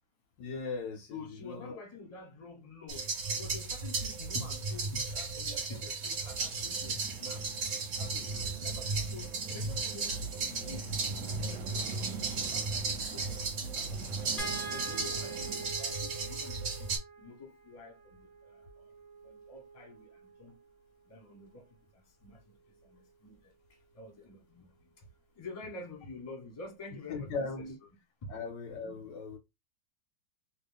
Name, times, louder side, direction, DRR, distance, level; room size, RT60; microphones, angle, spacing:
voice 1, 0.4-1.8 27.1-27.8 28.3-29.4, left 4 dB, 70° left, 1.2 m, -38 dB
voice 2, 1.1-3.0 3.3-7.4 8.0-8.9 9.1-10.9 11.2-14.0 14.6-16.9 17.2-18.9 19.2-20.1 20.4-20.5 21.1-21.6 21.9-22.4 22.8-23.3 23.9-24.7 25.4-27.9 28.2-28.3 28.8-29.0, left 2 dB, 20° left, 1.0 m, -48 dB
sound 1, 2.9-17.0, right 4 dB, 50° right, 1.2 m, -35 dB
sound 2, 6.3-15.7, right 5 dB, 75° right, 1.2 m, -46 dB
sound 3, 14.4-20.7 22.2-22.4 22.8-22.9, right 3 dB, 45° left, 0.7 m, -45 dB
2.9 x 2.7 x 3.4 m
omnidirectional pair, 2.2 m